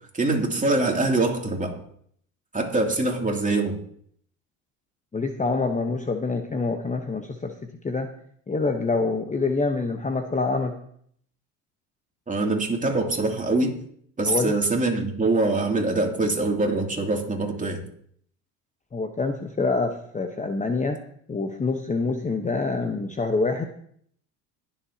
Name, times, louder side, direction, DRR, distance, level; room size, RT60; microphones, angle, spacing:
voice 1, 0.1-1.8 2.5-3.7 12.3-13.7 14.2-17.8, right 2 dB, 20° right, 1 dB, 2.8 m, -24 dB
voice 2, 5.1-7.5 7.8-8.1 8.5-10.7 14.3-14.5 18.9-21.0 21.3-23.7, left 3 dB, 20° left, 6 dB, 1.0 m, -26 dB
21.5 x 7.4 x 2.9 m, 0.63 s
hypercardioid pair, 70°, 41 cm